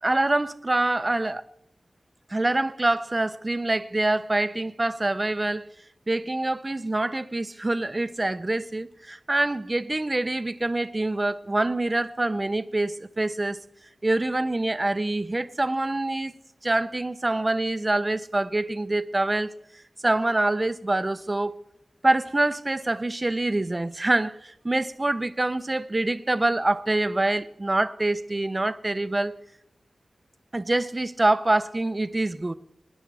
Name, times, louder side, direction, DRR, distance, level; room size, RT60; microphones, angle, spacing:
voice 1, 0.0-1.4 2.3-5.7 6.1-13.6 14.0-16.3 16.6-19.5 20.0-21.6 22.0-29.4 30.5-32.5, right 2 dB, 25° right, 0.7 m, -25 dB
26.0 x 10.5 x 3.5 m
wide cardioid pair, 85°, 0 cm